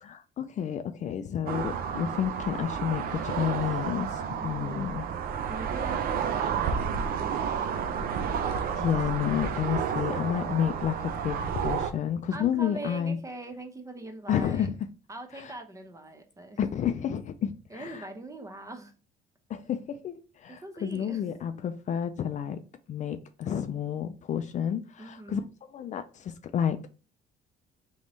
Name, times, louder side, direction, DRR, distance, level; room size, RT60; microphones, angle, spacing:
voice 1, 0.0-5.1 8.7-13.2 14.3-14.7 15.3-15.5 16.6-18.1 19.5-22.6 22.9-25.4 25.7-26.9, left 9 dB, 45° left, 0.4 m, -30 dB
sound 1, 1.5-11.9, right 7 dB, 60° right, 0.6 m, -31 dB
voice 2, 4.4-5.0 5.5-8.2 12.3-14.7 15.1-16.6 17.7-18.9 20.5-21.2 25.0-25.5, right 2 dB, 20° right, 0.9 m, -42 dB
3.5 x 3.1 x 3.9 m
cardioid pair, 110°, 17 cm